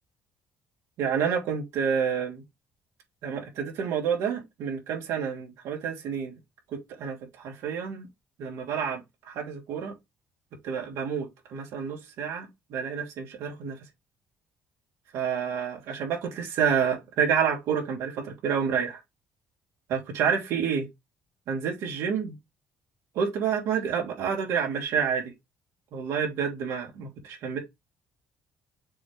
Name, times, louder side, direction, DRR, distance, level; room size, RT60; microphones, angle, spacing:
voice 1, 1.0-2.4 3.2-6.3 6.7-8.1 8.4-9.9 10.6-13.8 15.1-19.0 19.9-20.9 21.5-22.4 23.1-25.3 25.9-27.6, right 7 dB, 80° right, 2.9 m, -29 dB
6.8 x 3.2 x 5.4 m
cardioid pair, 90°, 5 cm